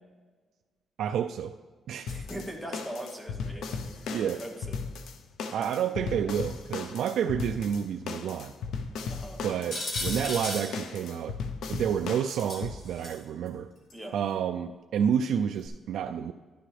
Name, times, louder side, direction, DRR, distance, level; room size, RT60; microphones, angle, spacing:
voice 1, 1.0-1.5 1.9-2.2 4.1-4.4 5.5-8.5 9.4-11.4 11.7-13.7 14.1-16.3, right 8 dB, 75° right, 6 dB, 0.3 m, -29 dB
sound 1, 2.1-12.8, left 5 dB, 80° left, 0.6 m, -37 dB
voice 2, 2.1-4.8 9.1-9.4 13.9-14.1, right 1 dB, 10° left, 2 dB, 1.1 m, -41 dB
sound 2, 9.7-10.7 12.5-13.2 13.9-14.0 15.6-15.7, left 1 dB, 55° left, 2.7 m, -34 dB
11.5 x 10.0 x 3.3 m, 1.4 s
cardioid pair, 170°, 0 cm